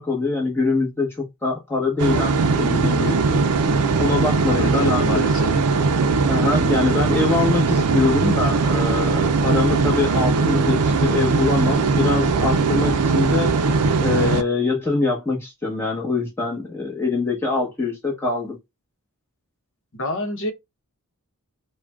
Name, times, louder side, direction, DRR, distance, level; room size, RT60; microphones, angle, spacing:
voice 1, 0.0-3.5 4.0-5.0 6.3-13.6 14.0-18.6, left 3 dB, 10° left, 1.2 m, -24 dB
sound 1, 2.0-14.4, right 4 dB, 85° right, 0.5 m, -20 dB
voice 2, 4.5-5.5 19.9-20.5, left 2 dB, 60° left, 0.9 m, -27 dB
4.8 x 2.3 x 2.4 m
head